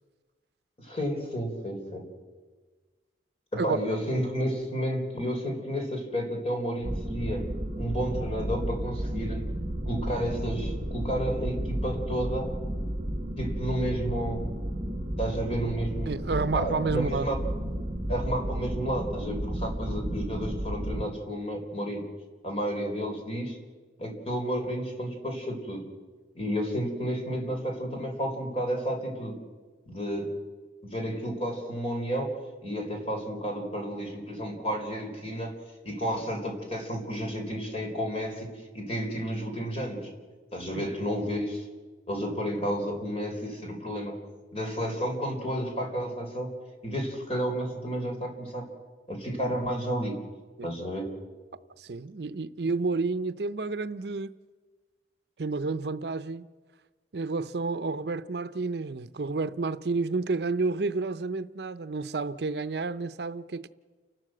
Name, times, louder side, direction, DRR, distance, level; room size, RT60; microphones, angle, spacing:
voice 1, 0.8-2.1 3.5-7.5 7.8-9.5 9.9-12.5 13.4-14.5 15.2-16.2 16.5-17.4 18.1-22.1 22.4-23.6 24.0-25.9 26.3-29.4 29.9-30.3 30.8-32.3 32.6-35.5 35.8-38.5 38.7-40.1 40.5-41.7 42.1-44.2 44.5-46.5 46.8-48.7 49.1-50.2 50.6-51.1, equal, 35° left, 4.1 m, -31 dB
sound 1, 6.8-21.0, equal, 35° right, 1.4 m, -33 dB
voice 2, 16.1-17.3 40.7-40.9 50.6-50.7 51.8-54.3 55.4-56.5 57.1-63.7, right 3 dB, 65° right, 0.6 m, -30 dB
29.5 x 12.5 x 7.8 m
head